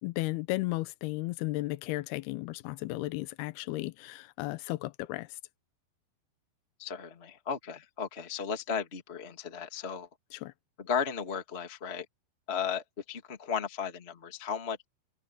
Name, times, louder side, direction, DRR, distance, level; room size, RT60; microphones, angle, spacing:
voice 1, 0.0-5.4 10.3-10.5, left 19 dB, 90° left, 2.3 m, -34 dB
voice 2, 6.8-10.1 10.8-12.0 12.5-14.8, left 7 dB, 35° left, 1.0 m, -35 dB
omnidirectional pair, 5.5 m